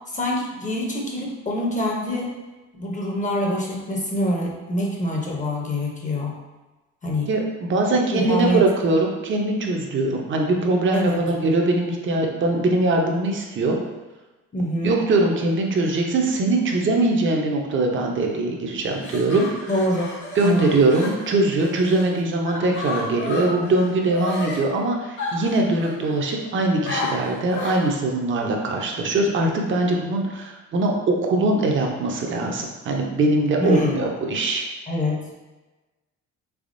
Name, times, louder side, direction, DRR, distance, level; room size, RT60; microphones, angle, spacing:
voice 1, 0.1-2.3 2.7-6.3 7.0-7.3 8.1-8.6 10.9-11.2 14.5-15.0 19.7-20.0 20.4-20.7 33.6-34.0 34.9-35.1, left 1 dB, 25° left, -2 dB, 0.7 m, -25 dB
voice 2, 7.3-13.8 14.8-19.7 20.4-34.6, right 2 dB, 40° right, 1 dB, 0.6 m, -22 dB
sound 1, 18.8-22.1 22.5-24.6 25.2-26.2 26.9-27.9, left 3 dB, 80° left, 1.3 m, -32 dB
3.5 x 3.3 x 2.5 m, 1.2 s
cardioid pair, 90°, 30 cm